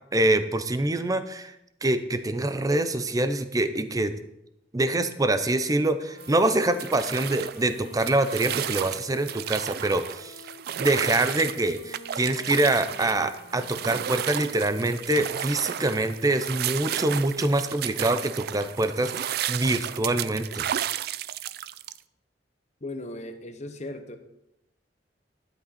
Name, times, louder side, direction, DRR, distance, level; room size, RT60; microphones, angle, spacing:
voice 1, 0.1-1.5 1.8-4.1 4.7-10.4 10.8-20.7, right 2 dB, 20° right, 10 dB, 0.6 m, -25 dB
Wind instrument woodwind instrument, 5.9-14.6, left 1 dB, 65° left, 1.5 m, -48 dB
sound 1, 6.2-22.0, right 10 dB, 60° right, 0.4 m, -33 dB
voice 2, 22.8-24.2, left 1 dB, 40° left, 7 dB, 1.0 m, -37 dB
12.0 x 8.2 x 4.2 m, 0.85 s
head